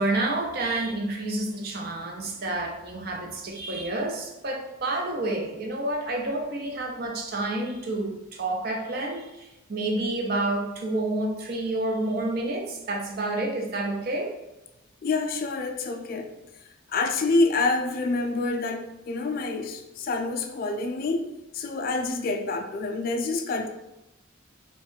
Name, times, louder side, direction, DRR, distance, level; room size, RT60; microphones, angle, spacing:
voice 1, 0.0-14.3, right 2 dB, 50° right, 2 dB, 0.5 m, -29 dB
voice 2, 15.0-16.3 16.9-21.3 21.5-23.7, left 3 dB, 50° left, 5 dB, 0.3 m, -27 dB
2.5 x 2.3 x 3.6 m, 0.98 s
head